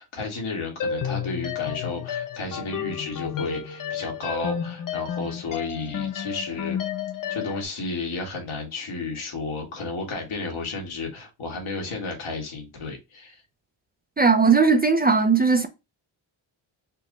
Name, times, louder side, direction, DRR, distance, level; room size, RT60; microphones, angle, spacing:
voice 1, 0.0-6.8 7.3-13.4, left 3 dB, 85° left, 1.7 m, -32 dB
sound 1, 0.8-7.6, left 8 dB, 45° left, 0.5 m, -31 dB
voice 2, 14.2-15.7, right 5 dB, 20° right, 0.4 m, -18 dB
4.5 x 2.1 x 3.8 m
wide cardioid pair, 135°, 48 cm